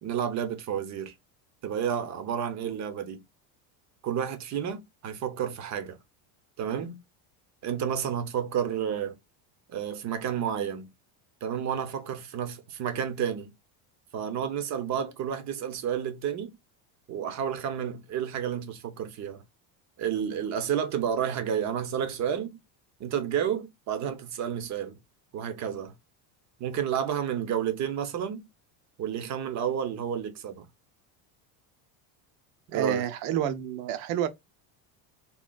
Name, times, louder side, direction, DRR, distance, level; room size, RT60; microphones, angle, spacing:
voice 1, 0.0-1.1 1.6-3.2 4.0-6.0 6.6-7.0 7.6-9.2 9.7-10.9 11.4-13.5 14.1-16.5 17.1-19.4 20.0-22.6 23.0-25.0 25.3-25.9 26.6-28.5 29.0-30.7 32.7-33.1, right 8 dB, 35° right, 0.6 m, -31 dB
voice 2, 32.7-34.3, right 10 dB, 70° right, 0.7 m, -29 dB
3.8 x 2.4 x 2.2 m
cardioid pair, 145°, 48 cm